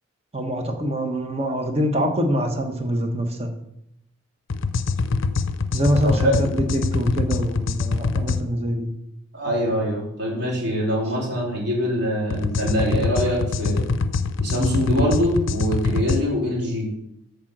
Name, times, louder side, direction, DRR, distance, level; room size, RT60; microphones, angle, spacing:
voice 1, 0.3-3.5 5.7-8.9, equal, 30° right, 4 dB, 1.2 m, -24 dB
sound 1, 4.5-8.4 12.3-16.2, left 4 dB, 70° left, 0.6 m, -24 dB
voice 2, 6.0-6.5 9.3-13.9 14.4-16.9, equal, 55° right, -4 dB, 3.6 m, -23 dB
7.3 x 5.2 x 7.4 m, 0.79 s
head